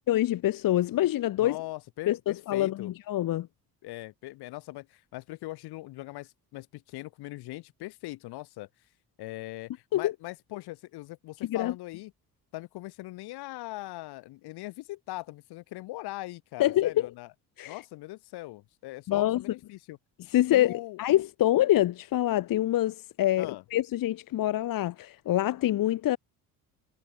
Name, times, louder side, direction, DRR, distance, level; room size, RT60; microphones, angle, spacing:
voice 1, 0.0-1.6 2.1-3.5 9.9-10.1 11.5-11.7 16.6-17.1 17.6-17.7 19.1-19.4 20.3-26.2, left 14 dB, 60° left, 1.3 m, -26 dB
voice 2, 1.4-2.9 3.8-8.7 9.2-12.1 12.5-17.3 17.6-20.0 20.5-21.0 23.4-23.6, left 19 dB, 90° left, 3.4 m, -41 dB
cardioid pair, 120°, 38 cm